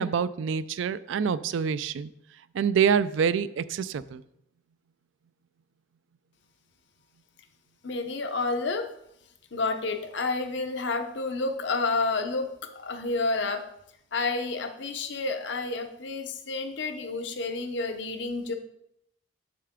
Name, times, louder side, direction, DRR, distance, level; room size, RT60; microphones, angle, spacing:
voice 1, 0.0-2.1 2.5-4.2, right 7 dB, 80° right, 16 dB, 0.3 m, -26 dB
voice 2, 7.8-8.9 9.5-13.6 14.1-18.5, left 3 dB, 70° left, 6 dB, 0.7 m, -30 dB
6.7 x 6.6 x 3.6 m, 0.78 s
head